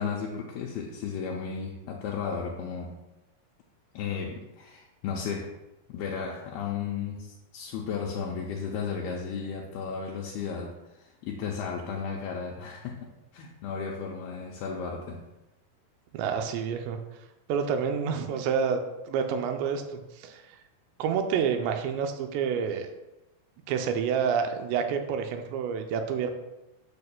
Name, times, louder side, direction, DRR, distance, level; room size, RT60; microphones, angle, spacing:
voice 1, 0.0-3.0 3.9-5.5 5.9-15.2, left 6 dB, 85° left, -1 dB, 2.3 m, -34 dB
voice 2, 16.1-17.0 17.5-18.8 19.1-20.6 21.0-22.9 23.7-26.3, right 7 dB, 90° right, 6 dB, 2.8 m, -28 dB
8.6 x 6.7 x 2.2 m, 0.97 s
omnidirectional pair, 5.0 m